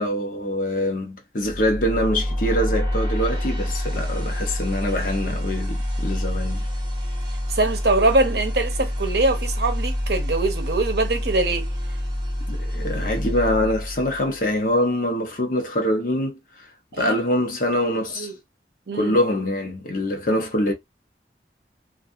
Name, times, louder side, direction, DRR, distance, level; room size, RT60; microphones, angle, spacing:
voice 1, 0.0-6.7 12.5-16.7 16.9-18.3 18.9-20.7, left 1 dB, 50° left, 0.8 m, -24 dB
sound 1, 1.4-14.5, equal, 25° right, 1.2 m, -27 dB
voice 2, 7.5-11.7 16.9-17.1 18.2-18.3 18.9-19.2, right 2 dB, 65° right, 0.7 m, -22 dB
2.6 x 2.3 x 2.4 m
head